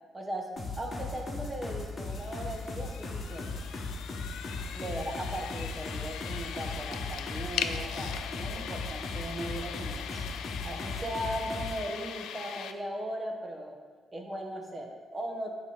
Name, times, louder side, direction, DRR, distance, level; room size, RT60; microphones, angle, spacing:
voice 1, 0.1-0.5 0.8-3.5 4.7-10.2 10.6-13.8 14.1-15.5, right 1 dB, 25° right, 1 dB, 1.1 m, -38 dB
sound 1, 0.6-11.8, left 3 dB, 40° left, 1.1 m, -37 dB
sound 2, 2.0-12.7, left 8 dB, 80° left, 0.3 m, -40 dB
7.8 x 3.0 x 5.8 m, 1.5 s
cardioid pair, 90°, 0 cm